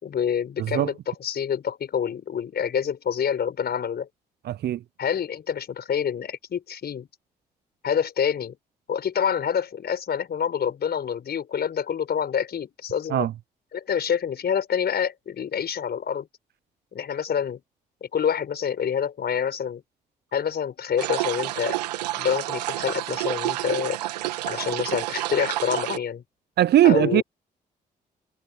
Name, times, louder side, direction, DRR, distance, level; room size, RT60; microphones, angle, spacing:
voice 1, 0.0-4.1 5.0-7.1 7.8-8.6 8.9-13.3 13.7-16.3 16.9-17.6 18.0-19.8 20.3-21.8 22.2-24.0 24.5-26.2 26.8-27.2, left 8 dB, 55° left, 5.2 m, -27 dB
voice 2, 0.6-0.9 4.4-4.8 13.1-13.3 26.6-27.2, right 12 dB, 55° right, 0.6 m, -20 dB
sound 1, 21.0-26.0, right 17 dB, 85° right, 1.4 m, -29 dB
hypercardioid pair, 45°, 20 cm